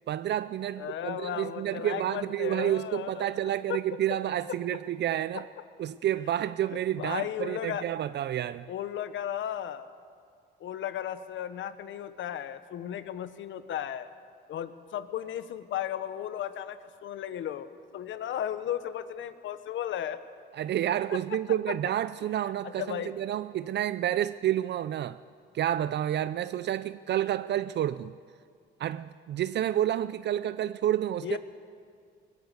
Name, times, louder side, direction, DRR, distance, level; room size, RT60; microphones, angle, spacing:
voice 1, 0.1-5.5 5.8-8.7 20.5-25.2 25.5-28.2 28.8-31.4, right 11 dB, 60° right, 0.5 m, -29 dB
voice 2, 0.8-3.8 6.7-7.9 8.7-9.9 10.6-14.1 14.5-20.2 21.1-21.2 21.7-21.8 22.6-23.1 31.2-31.4, left 10 dB, 75° left, 1.1 m, -35 dB
20.5 x 17.0 x 8.1 m
cardioid pair, 90°, 20 cm